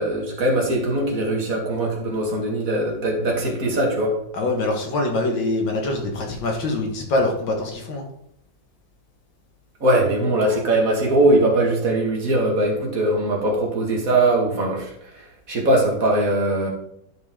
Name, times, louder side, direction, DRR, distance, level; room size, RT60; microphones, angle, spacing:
voice 1, 0.0-4.2 9.8-16.7, right 1 dB, 45° right, -1 dB, 2.0 m, -21 dB
voice 2, 4.3-8.0, left 2 dB, 65° left, 1 dB, 2.3 m, -24 dB
10.5 x 5.1 x 3.7 m, 0.75 s
omnidirectional pair, 2.2 m